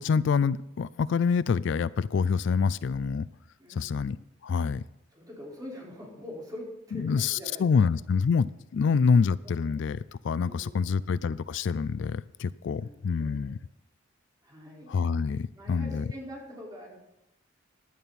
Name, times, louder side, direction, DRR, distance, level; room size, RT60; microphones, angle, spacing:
voice 1, 0.0-3.3 3.8-4.2 4.4-4.8 6.9-13.6 14.9-16.1, left 5 dB, 65° left, 18 dB, 0.3 m, -26 dB
voice 2, 3.6-4.1 5.1-7.9 9.6-9.7 10.4-11.1 12.7-13.5 14.4-14.9 15.5-17.0, left 1 dB, 20° right, -4 dB, 4.6 m, -44 dB
16.0 x 11.0 x 4.2 m, 0.87 s
head